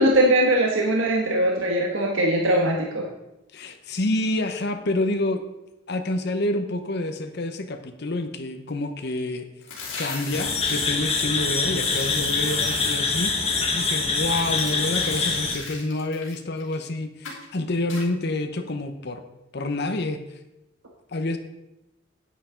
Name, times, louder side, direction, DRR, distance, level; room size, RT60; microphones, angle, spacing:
voice 1, 0.0-3.0, right 1 dB, 80° right, 0 dB, 1.3 m, -21 dB
voice 2, 3.5-5.4 5.9-9.5 10.0-19.2 19.5-20.2 21.1-21.4, left 2 dB, 55° left, 7 dB, 0.9 m, -28 dB
sound 1, 9.6-10.8 11.8-12.9 14.1-16.8 17.2-17.5 17.9-18.0, left 4 dB, 80° left, 2.9 m, -37 dB
sound 2, 10.3-15.6, left 4 dB, 30° left, 1.4 m, -25 dB
10.0 x 9.4 x 3.8 m, 0.95 s
head